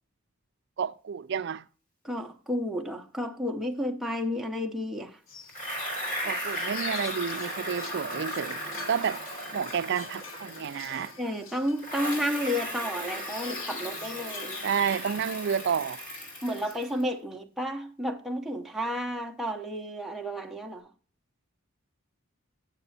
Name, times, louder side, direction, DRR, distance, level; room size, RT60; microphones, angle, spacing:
voice 1, 0.8-1.7 6.2-8.6 8.9-9.3 9.5-11.1 14.6-16.0, right 7 dB, 55° right, 0.4 m, -30 dB
voice 2, 2.0-5.2 11.2-14.6 16.4-20.9, equal, ahead, 0.8 m, -32 dB
sound 1, 5.3-17.0, left 6 dB, 70° left, 0.9 m, -45 dB
Bicycle, 5.5-11.3 11.8-17.0, equal, 40° left, 3.0 m, -36 dB
8.9 x 6.8 x 4.2 m
head